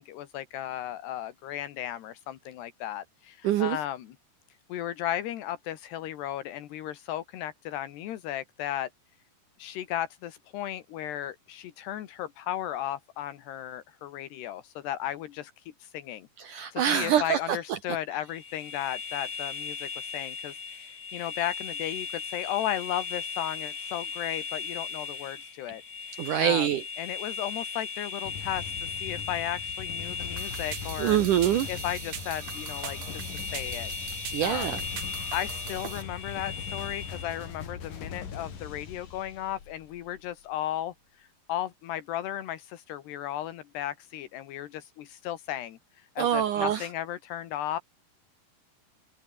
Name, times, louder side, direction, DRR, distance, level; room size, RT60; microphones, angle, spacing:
voice 1, 0.0-4.1 4.7-8.9 9.6-15.5 15.8-25.8 26.4-26.7 27.0-31.2 31.7-33.9 34.4-34.8 35.3-45.8 46.2-47.8, left 12 dB, 80° left, 3.7 m, -35 dB
voice 2, 3.4-3.8 16.4-17.8 26.2-26.8 31.0-31.7 34.3-34.8 46.2-46.9, right 10 dB, 70° right, 2.0 m, -25 dB
sound 1, 18.3-37.5, left 5 dB, 30° left, 2.6 m, -38 dB
sound 2, 28.2-40.4, left 7 dB, 55° left, 4.8 m, -41 dB
sound 3, 30.4-36.0, right 9 dB, 50° right, 2.4 m, -41 dB
omnidirectional pair, 4.8 m